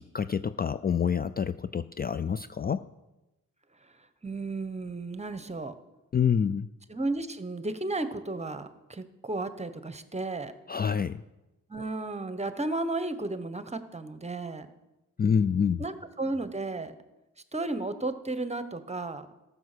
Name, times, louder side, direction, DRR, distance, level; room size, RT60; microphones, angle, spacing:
voice 1, 0.0-2.9 6.1-6.7 10.7-11.2 15.2-15.8, left 7 dB, 30° left, 13 dB, 0.4 m, -27 dB
voice 2, 4.2-5.7 6.9-10.5 11.7-14.7 15.8-16.9 17.5-19.3, right 2 dB, 20° right, 11 dB, 1.0 m, -33 dB
13.0 x 6.5 x 6.7 m, 1.0 s
cardioid pair, 60°, 31 cm